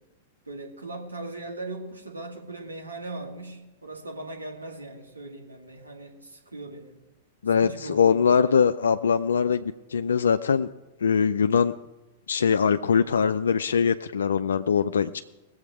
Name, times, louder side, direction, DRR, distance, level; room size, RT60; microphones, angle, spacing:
voice 1, 0.5-6.9 7.5-8.7, right 2 dB, 90° right, 0 dB, 2.3 m, -39 dB
voice 2, 7.4-10.7 11.0-11.7 12.3-15.2, left 6 dB, 75° left, 9 dB, 0.4 m, -22 dB
19.5 x 7.8 x 4.9 m, 1.1 s
figure-of-eight pair, 100°, 0 cm